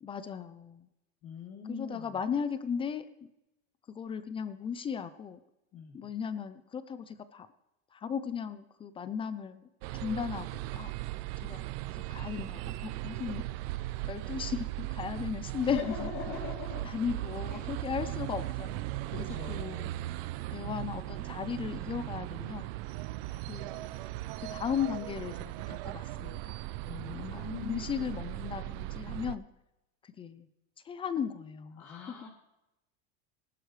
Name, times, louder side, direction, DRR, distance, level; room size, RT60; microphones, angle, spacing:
voice 1, 0.0-0.9 1.7-3.3 3.9-5.4 5.9-7.5 7.9-9.6 10.0-10.9 11.4-13.4 14.1-16.1 16.8-19.1 19.5-19.9 20.5-22.7 23.5-24.1 24.4-26.6 27.1-29.5 30.0-30.5 30.8-32.2, left 7 dB, 15° left, 13 dB, 0.4 m, -36 dB
voice 2, 1.2-2.2 5.7-6.0 15.6-16.9 17.5-17.7 18.0-18.1 19.1-20.0 26.9-27.9 31.8-32.3, left 6 dB, 40° left, -6 dB, 2.9 m, -42 dB
sound 1, 9.8-29.3, right 17 dB, 70° right, 0.5 m, -38 dB
19.0 x 11.5 x 3.2 m, 0.91 s
supercardioid pair, 155°, 31 cm